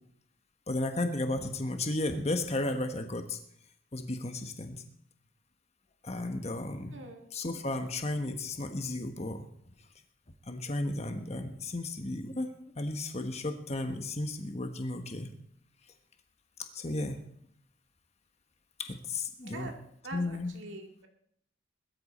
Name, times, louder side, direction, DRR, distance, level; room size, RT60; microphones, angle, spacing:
voice 1, 0.7-3.4 3.9-4.8 6.0-7.0 7.3-9.5 10.5-12.5 12.8-15.3 16.7-17.2 18.8-19.7 20.1-20.5, left 2 dB, 30° left, 6 dB, 1.2 m, -34 dB
voice 2, 6.9-7.3 19.4-19.8 20.0-21.1, right 2 dB, 70° right, 2 dB, 2.1 m, -44 dB
21.0 x 13.5 x 4.3 m, 0.68 s
head